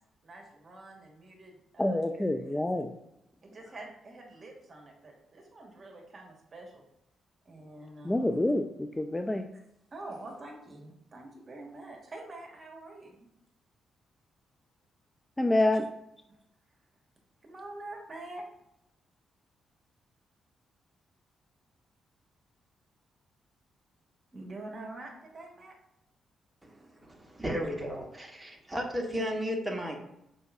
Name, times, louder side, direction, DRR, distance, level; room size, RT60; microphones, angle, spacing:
voice 1, 0.2-2.7 3.4-6.8 7.4-8.4 9.9-13.3 17.4-18.4 24.3-25.8, right 2 dB, 45° right, 1 dB, 1.3 m, -46 dB
voice 2, 1.8-2.9 8.0-9.5 15.4-15.9, left 1 dB, 15° left, 7 dB, 0.4 m, -27 dB
voice 3, 27.0-30.0, equal, 15° right, 1 dB, 1.3 m, -34 dB
5.1 x 4.0 x 2.5 m, 0.82 s
hypercardioid pair, 40°, 0 cm